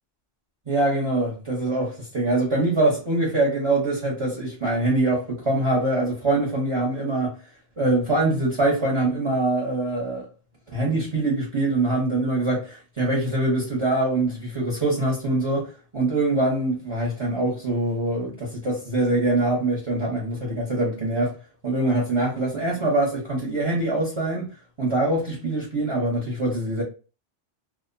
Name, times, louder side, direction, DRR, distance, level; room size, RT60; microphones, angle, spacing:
voice 1, 0.7-7.3 7.8-10.3 10.7-21.3 21.6-24.5 24.8-26.8, right 2 dB, 30° right, 0.8 m, -24 dB
2.5 x 2.1 x 2.5 m
omnidirectional pair, 1.1 m